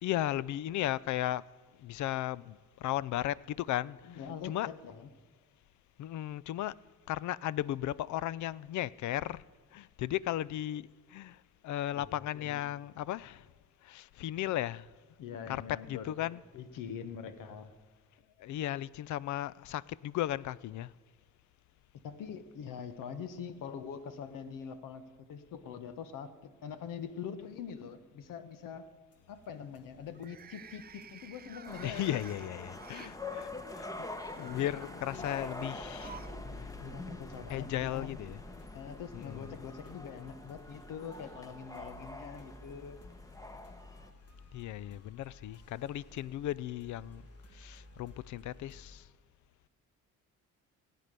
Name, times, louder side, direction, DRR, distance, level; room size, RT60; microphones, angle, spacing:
voice 1, 0.0-1.5 1.8-4.1 4.4-4.7 6.0-6.8 7.1-9.4 9.7-13.5 13.8-14.9 15.5-15.6 15.9-16.4 18.4-20.9 31.8-33.9 34.4-36.2 37.5-38.4 39.1-39.5 44.5-47.3 47.5-49.1, left 13 dB, 65° left, 0.5 m, -35 dB
voice 2, 4.0-5.1 11.9-12.6 15.2-17.7 22.0-28.9 29.3-32.1 34.3-35.3 36.8-38.2 38.7-43.0, left 7 dB, 80° left, 1.1 m, -44 dB
sound 1, 26.6-27.2 27.6-28.0 30.1-33.2 34.0-36.4 36.7-36.8 37.9-38.0, right 8 dB, 30° right, 0.5 m, -53 dB
sound 2, 29.1-49.0, left 1 dB, 50° left, 2.3 m, -57 dB
sound 3, 31.7-44.1, left 2 dB, 10° left, 0.9 m, -45 dB
17.0 x 9.2 x 6.7 m
cardioid pair, 100°, 32 cm